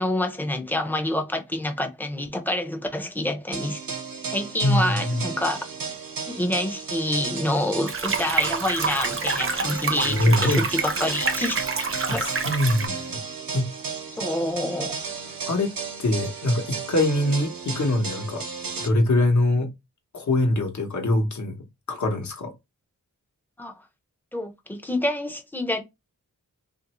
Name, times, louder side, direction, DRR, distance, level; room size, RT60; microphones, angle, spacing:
voice 1, 0.0-3.8 4.3-5.7 6.3-12.4 14.2-15.0 23.6-23.7 24.3-25.8, left 1 dB, 5° left, 0.5 m, -27 dB
sound 1, 3.5-18.9, right 5 dB, 90° right, 0.9 m, -34 dB
voice 2, 4.6-5.2 10.0-10.6 12.1-13.2 13.5-13.7 15.5-15.7 16.0-18.4 18.8-19.7 20.1-22.5, left 1 dB, 60° left, 0.9 m, -23 dB
sound 2, 7.9-12.9, right 4 dB, 40° right, 0.6 m, -27 dB
3.0 x 2.5 x 2.9 m
wide cardioid pair, 95°, 33 cm